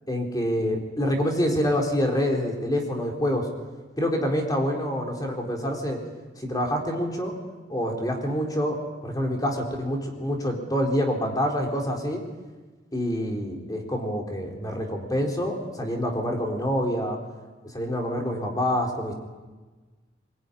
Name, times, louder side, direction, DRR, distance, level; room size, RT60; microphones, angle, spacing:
voice 1, 0.1-3.5 4.0-6.0 6.4-7.3 7.7-8.8 9.0-12.2 12.9-17.2 17.7-19.1, equal, 20° left, 1 dB, 4.1 m, -26 dB
21.5 x 21.5 x 9.9 m, 1.3 s
head